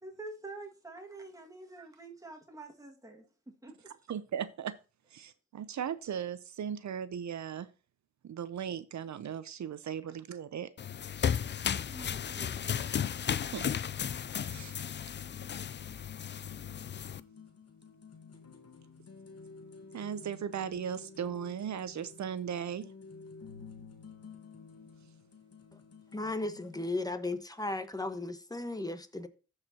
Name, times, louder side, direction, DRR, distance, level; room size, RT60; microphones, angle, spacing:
voice 1, 0.0-3.9 11.9-12.7, right 2 dB, 10° right, 2.0 m, -47 dB
voice 2, 4.1-4.7 5.1-7.7 8.2-10.7 13.3-13.7 14.5-14.7 19.9-22.9, right 8 dB, 70° right, 0.6 m, -37 dB
sound 1, 10.8-17.2, left 8 dB, 40° left, 0.4 m, -34 dB
sound 2, 15.2-26.9, left 4 dB, 55° left, 1.3 m, -52 dB
voice 3, 26.1-29.3, left 2 dB, 10° left, 1.2 m, -35 dB
14.0 x 4.9 x 2.9 m
cardioid pair, 55°, 30 cm